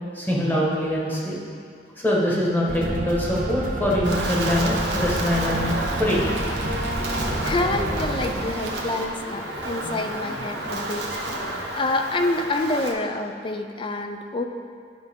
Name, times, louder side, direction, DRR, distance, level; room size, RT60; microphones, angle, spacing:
voice 1, 0.1-1.4 2.0-6.2, left 1 dB, 10° left, -5 dB, 1.3 m, -23 dB
sound 1, 2.7-8.3, right 1 dB, 50° right, 0.9 m, -28 dB
Wind, 4.0-12.9, right 2 dB, 85° right, 1.0 m, -31 dB
sound 2, 5.6-11.7, equal, 50° left, 1.4 m, -37 dB
voice 2, 7.4-11.1 11.7-14.4, left 2 dB, 30° left, 6 dB, 0.4 m, -27 dB
11.0 x 5.4 x 3.6 m, 2.3 s
head